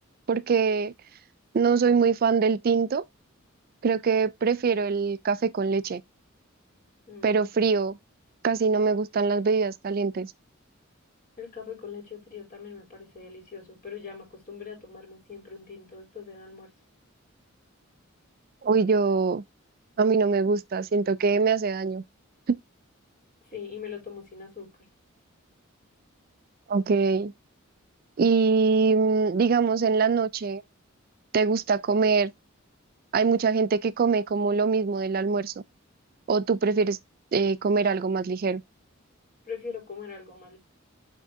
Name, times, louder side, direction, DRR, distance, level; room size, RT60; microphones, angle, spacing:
voice 1, 0.3-0.9 1.5-3.0 3.8-6.0 7.2-7.9 8.4-10.3 18.6-19.4 20.0-22.0 22.5-22.6 26.7-27.3 28.2-30.6 31.3-32.3 33.1-35.5 36.3-37.0 37.3-38.6, right 5 dB, 45° right, 0.4 m, -23 dB
voice 2, 7.1-7.5 11.4-16.7 23.5-24.9 39.5-40.6, left 6 dB, 40° left, 4.4 m, -41 dB
8.1 x 3.8 x 3.5 m
head